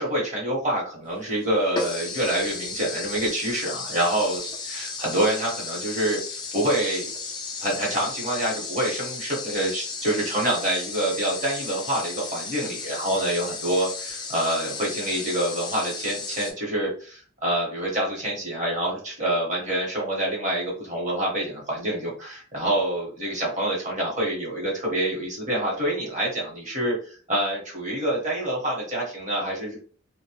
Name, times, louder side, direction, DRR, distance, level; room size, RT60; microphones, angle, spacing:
voice 1, 0.0-7.1 7.6-29.8, right 1 dB, 35° right, -3 dB, 1.0 m, -27 dB
sound 1, 1.1-1.2 1.7-16.5, left 4 dB, 20° left, 0.3 m, -34 dB
2.1 x 2.0 x 2.9 m, 0.41 s
head